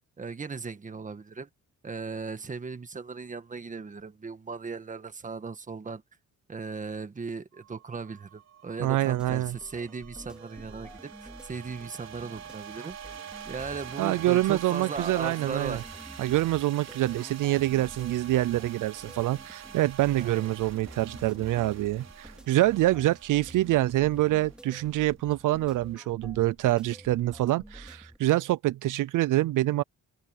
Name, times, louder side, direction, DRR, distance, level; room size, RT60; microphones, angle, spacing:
voice 1, 0.2-1.5 1.8-6.0 6.5-13.0 13.5-15.8 20.2-20.4, right 4 dB, 25° right, 1.6 m, -37 dB
sound 1, 7.5-25.8, right 8 dB, 55° right, 3.9 m, -46 dB
sound 2, 8.8-28.2, equal, 5° right, 3.2 m, -49 dB
voice 2, 8.8-9.6 14.0-15.8 16.2-29.8, right 15 dB, 80° right, 0.5 m, -26 dB
open air
cardioid pair, 145°, 31 cm